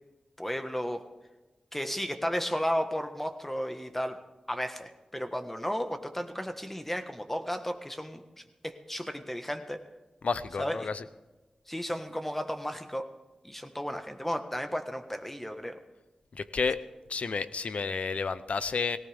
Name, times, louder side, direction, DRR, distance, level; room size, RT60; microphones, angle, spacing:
voice 1, 0.4-1.0 1.7-4.2 4.5-8.2 8.6-9.8 10.6-10.9 11.7-13.1 13.4-15.8, equal, 10° left, 7 dB, 1.5 m, -33 dB
voice 2, 10.2-11.0 16.3-16.8 17.1-19.0, left 5 dB, 75° left, 14 dB, 0.7 m, -31 dB
18.0 x 17.5 x 3.6 m, 1.1 s
cardioid pair, 50°, 2 cm